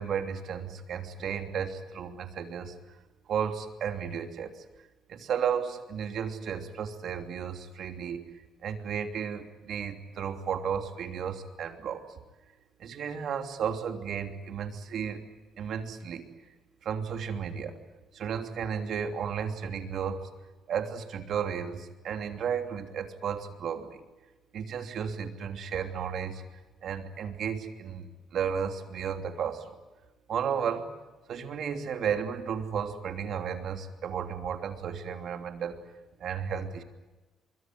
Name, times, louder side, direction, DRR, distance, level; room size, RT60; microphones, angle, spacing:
voice 1, 0.0-2.8 3.3-4.6 5.1-8.2 8.6-12.0 12.8-15.2 15.6-16.2 16.8-17.8 18.1-20.2 20.7-24.0 24.5-26.4 26.8-29.7 30.3-30.9 31.3-35.8 36.2-36.8, right 7 dB, 60° right, 5 dB, 3.0 m, -33 dB
24.5 x 23.0 x 9.4 m, 1.2 s
cardioid pair, 105°, 0 cm